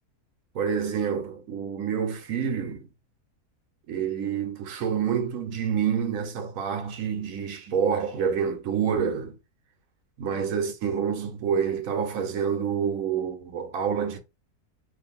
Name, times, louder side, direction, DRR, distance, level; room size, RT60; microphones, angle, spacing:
voice 1, 0.5-2.9 3.9-9.4 10.2-14.2, right 7 dB, 65° right, 1.1 m, -27 dB
2.7 x 2.5 x 4.1 m
omnidirectional pair, 1.7 m